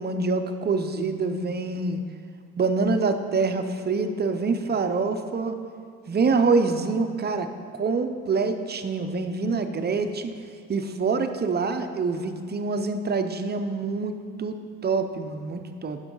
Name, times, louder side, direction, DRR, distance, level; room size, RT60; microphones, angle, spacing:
voice 1, 0.0-2.0 2.6-5.6 6.1-7.5 7.8-10.3 10.7-14.5 14.8-16.0, right 4 dB, 35° right, 7 dB, 0.6 m, -25 dB
9.9 x 6.3 x 3.8 m, 2.2 s
cardioid pair, 90°, 30 cm